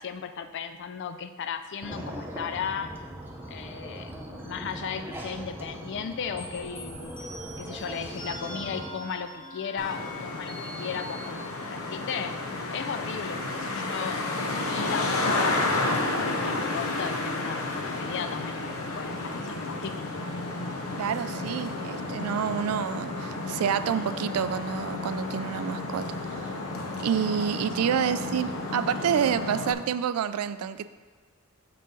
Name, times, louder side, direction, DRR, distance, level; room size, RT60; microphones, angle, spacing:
voice 1, 0.0-2.9 3.5-4.1 4.4-7.3 7.6-12.3 12.7-14.2 14.7-19.9 27.9-28.0, left 6 dB, 55° left, 9 dB, 0.4 m, -36 dB
sound 1, 1.8-8.9, equal, 10° right, 0.7 m, -40 dB
sound 2, 6.4-11.3, left 1 dB, 25° left, 1.4 m, -43 dB
Traffic noise roadway noise, 9.8-29.7, left 2 dB, 70° left, 0.8 m, -31 dB
voice 2, 21.0-26.5 27.0-30.8, right 8 dB, 85° right, 13 dB, 0.3 m, -28 dB
6.9 x 6.6 x 3.8 m, 1.5 s
head